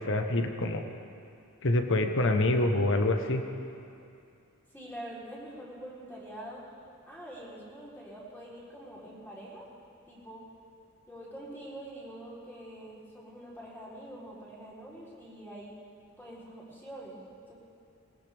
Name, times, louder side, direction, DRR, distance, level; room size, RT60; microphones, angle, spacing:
voice 1, 0.1-0.8 1.6-3.4, left 2 dB, 60° left, 5 dB, 1.2 m, -26 dB
voice 2, 4.7-6.6 7.1-9.7 10.1-10.4 11.1-15.7 16.2-17.2 17.5-17.6, right 1 dB, 10° left, -7 dB, 3.9 m, -45 dB
19.5 x 19.0 x 3.6 m, 2.5 s
head